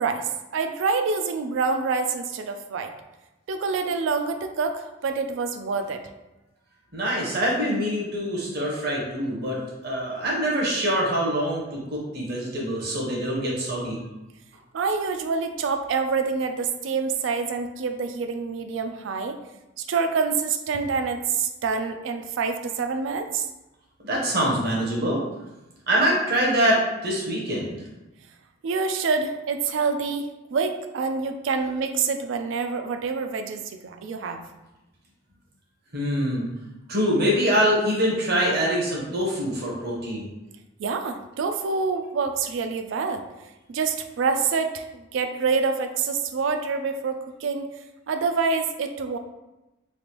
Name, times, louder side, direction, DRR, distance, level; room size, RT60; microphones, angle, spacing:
voice 1, 0.0-2.9 3.5-6.0 14.7-19.4 19.8-23.5 28.6-34.4 40.8-43.2 43.7-47.7 48.1-49.2, right 5 dB, 65° right, 7 dB, 0.3 m, -26 dB
voice 2, 6.9-9.6 9.8-14.0 24.0-25.2 25.9-27.8 35.9-36.5 36.9-40.3, equal, 50° right, -3 dB, 0.9 m, -24 dB
3.2 x 2.5 x 3.0 m, 1.0 s
head